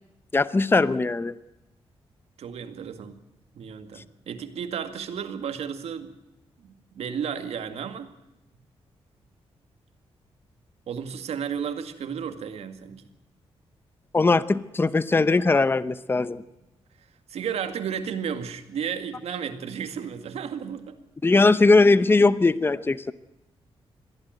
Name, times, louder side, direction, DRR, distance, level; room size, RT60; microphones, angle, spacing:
voice 1, 0.3-1.3 14.1-16.4 21.2-23.1, left 3 dB, 20° left, 15 dB, 0.8 m, -20 dB
voice 2, 2.4-3.2 3.5-6.1 6.6-8.1 10.9-13.0 17.3-20.9, right 7 dB, 85° right, 8 dB, 2.2 m, -33 dB
22.0 x 15.0 x 9.3 m, 0.95 s
cardioid pair, 110°, 10 cm